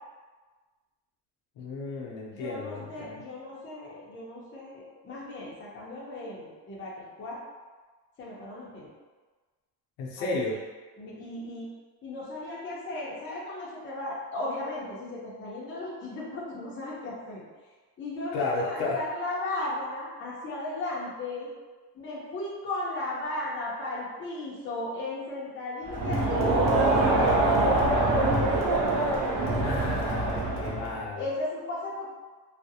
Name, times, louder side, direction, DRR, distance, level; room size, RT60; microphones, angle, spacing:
voice 1, 1.6-3.2 10.0-10.6 18.3-19.0 29.5-31.3, left 3 dB, 75° left, -2 dB, 0.6 m, -33 dB
voice 2, 2.3-7.4 8.2-8.9 10.2-10.6 11.0-11.7 12.0-17.4 18.0-21.5 21.9-28.7 31.2-32.1, left 2 dB, 30° left, -6 dB, 0.5 m, -36 dB
Crowd, 25.9-31.0, right 2 dB, 50° right, 0.5 m, -24 dB
2.4 x 2.0 x 2.7 m, 1.3 s
cardioid pair, 150°, 43 cm